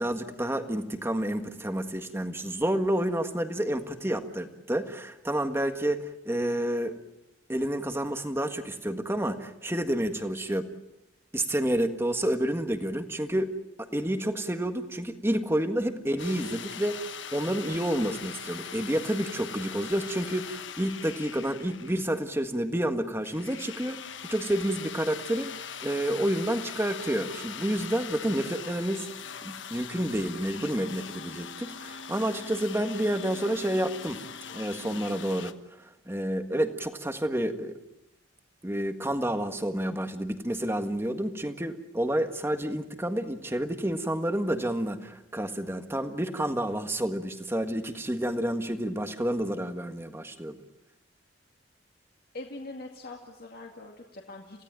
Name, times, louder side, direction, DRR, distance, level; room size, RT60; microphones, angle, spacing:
voice 1, 0.0-6.9 7.5-10.7 11.3-13.5 13.8-25.5 25.8-29.1 29.4-34.2 34.5-37.8 38.6-50.6, right 1 dB, 10° right, 7 dB, 1.6 m, -29 dB
sound 1, 16.2-22.4 23.2-35.5, left 7 dB, 70° left, 1.2 m, -41 dB
voice 2, 52.3-54.6, left 2 dB, 50° left, 1 dB, 2.3 m, -42 dB
29.0 x 17.0 x 9.0 m, 0.92 s
head